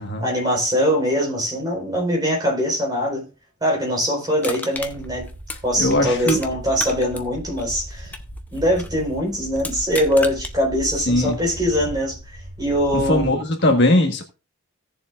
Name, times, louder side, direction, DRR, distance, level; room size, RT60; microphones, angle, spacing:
voice 1, 0.2-3.2 3.6-5.3 5.6-8.1 8.5-12.2 12.6-13.4, equal, 20° right, 4.2 m, -22 dB
Crushing, 4.4-6.5 6.8-9.0 9.6-10.5 11.0-11.1, left 2 dB, 5° left, 0.6 m, -33 dB
sound 1, 4.7-13.3, equal, 85° right, 3.1 m, -37 dB
voice 2, 5.8-6.4 11.1-11.3 13.1-14.2, left 1 dB, 50° left, 1.4 m, -19 dB
17.0 x 7.0 x 2.4 m
head